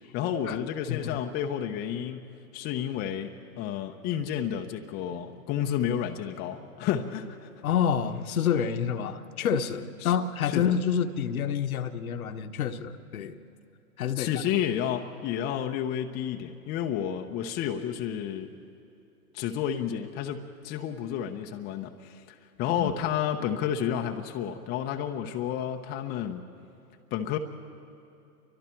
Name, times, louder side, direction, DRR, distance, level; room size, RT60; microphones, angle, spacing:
voice 1, 0.1-2.3 2.5-7.5 10.0-10.1 10.5-10.7 14.2-18.5 19.3-26.4 27.1-27.4, left 9 dB, 20° left, 4 dB, 0.8 m, -31 dB
voice 2, 0.9-1.2 7.6-13.4 14.0-14.4 22.7-22.9, left 8 dB, 60° left, 8 dB, 1.2 m, -28 dB
30.0 x 24.0 x 4.5 m, 2.8 s
hypercardioid pair, 120°, 49 cm